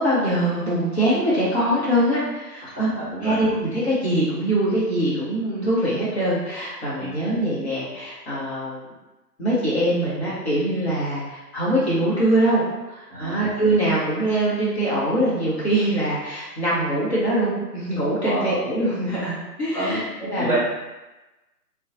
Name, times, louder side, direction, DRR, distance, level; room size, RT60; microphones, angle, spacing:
voice 1, 0.0-2.9 3.2-8.9 9.4-12.6 12.9-20.6, right 1 dB, 40° left, -9 dB, 0.8 m, -23 dB
voice 2, 2.6-3.3 7.0-7.1 13.1-13.4 18.2-18.5 19.7-20.0 20.3-20.6, right 1 dB, 5° right, -16 dB, 0.8 m, -28 dB
2.6 x 2.2 x 2.5 m, 1.1 s
figure-of-eight pair, 145°, 49 cm